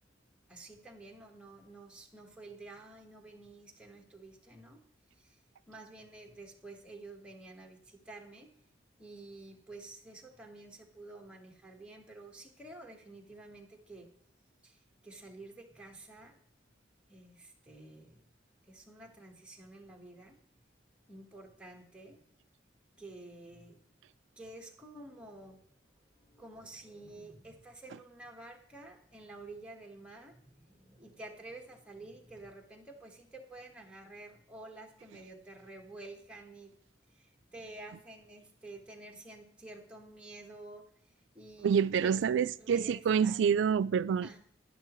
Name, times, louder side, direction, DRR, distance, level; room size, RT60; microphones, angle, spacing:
voice 1, 0.5-4.8 5.1-5.4 5.7-8.5 9.0-14.1 14.6-16.4 17.1-18.2 18.7-20.4 21.1-22.2 23.0-23.8 24.4-36.7 37.1-40.8 41.3-42.2 42.6-43.4 44.2-44.4, right 2 dB, 5° right, 1.3 m, -50 dB
voice 2, 41.6-44.3, right 7 dB, 65° right, 0.3 m, -27 dB
11.0 x 10.5 x 3.1 m
head